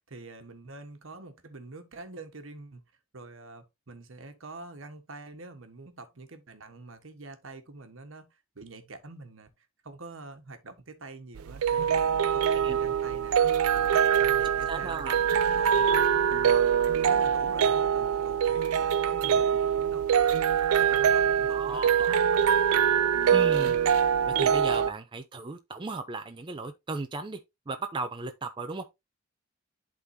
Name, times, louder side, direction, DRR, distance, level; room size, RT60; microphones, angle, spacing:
voice 1, 0.1-2.8 3.1-13.4 13.7-16.7 16.9-20.0 20.8-21.9, right 3 dB, 70° right, 1.2 m, -46 dB
sound 1, 11.4-24.9, right 8 dB, 90° right, 0.4 m, -24 dB
voice 2, 14.7-15.2 21.5-22.2 23.3-23.8 24.3-27.4 27.7-28.8, right 3 dB, 20° right, 0.4 m, -35 dB
11.5 x 3.8 x 2.7 m
head